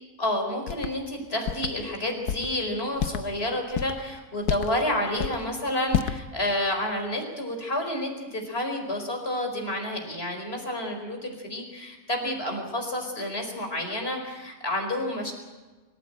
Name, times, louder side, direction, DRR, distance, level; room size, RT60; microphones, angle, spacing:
voice 1, 0.2-15.3, left 1 dB, 40° left, 3 dB, 4.8 m, -30 dB
sound 1, 0.7-0.9 1.5-1.7 2.3-2.5 3.0-3.2 3.7-4.0 4.4-4.8 5.1-5.4 5.9-6.2, left 9 dB, 90° left, 1.4 m, -28 dB
25.0 x 15.0 x 8.8 m, 1.3 s
omnidirectional pair, 1.6 m